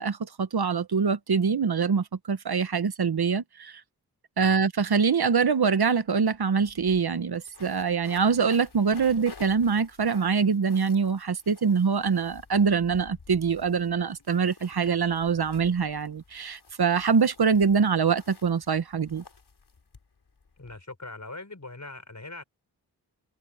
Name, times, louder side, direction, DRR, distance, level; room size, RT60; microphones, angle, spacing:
voice 1, 0.0-3.8 4.4-19.2, right 6 dB, 65° right, 1.2 m, -24 dB
sound 1, 6.0-6.1 6.3-20.8, left 4 dB, 70° left, 4.5 m, -52 dB
voice 2, 20.6-22.4, left 2 dB, 45° left, 5.7 m, -41 dB
cardioid pair, 40°, 40 cm